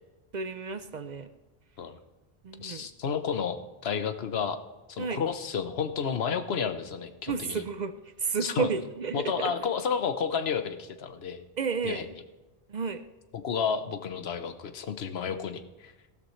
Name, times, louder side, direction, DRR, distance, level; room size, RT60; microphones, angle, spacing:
voice 1, 0.3-1.3 2.4-2.9 5.0-5.2 7.3-9.7 11.6-12.1 12.7-13.0, right 5 dB, 50° right, 11 dB, 0.6 m, -32 dB
voice 2, 2.6-3.6 3.8-4.6 4.9-7.6 8.4-8.7 9.1-11.4 11.8-12.0 13.3-15.9, left 6 dB, 80° left, 10 dB, 1.1 m, -31 dB
15.0 x 12.5 x 3.2 m, 1.2 s
omnidirectional pair, 1.0 m